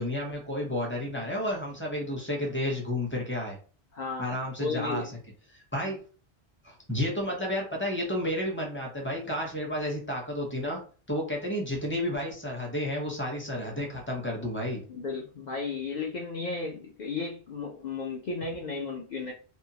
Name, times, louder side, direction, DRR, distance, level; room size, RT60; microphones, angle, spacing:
voice 1, 0.0-3.6 4.2-5.0 5.5-6.0 6.6-10.8 11.1-14.8, left 1 dB, 10° left, -1 dB, 0.7 m, -31 dB
voice 2, 3.9-5.1 14.9-19.3, left 4 dB, 55° left, -1 dB, 0.5 m, -34 dB
2.7 x 2.3 x 2.7 m, 0.39 s
omnidirectional pair, 1.1 m